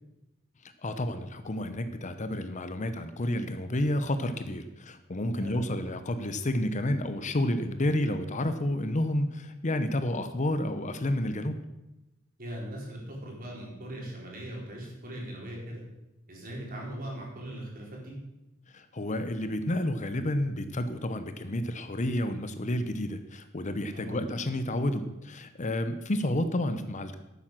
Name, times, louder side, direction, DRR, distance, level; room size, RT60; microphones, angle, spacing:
voice 1, 0.8-11.6 18.7-27.2, left 1 dB, 35° left, 9 dB, 0.8 m, -30 dB
voice 2, 5.3-5.7 12.4-15.8 16.3-18.1 23.9-24.2, right 1 dB, 45° right, -2 dB, 4.1 m, -40 dB
12.0 x 9.1 x 6.1 m, 0.96 s
head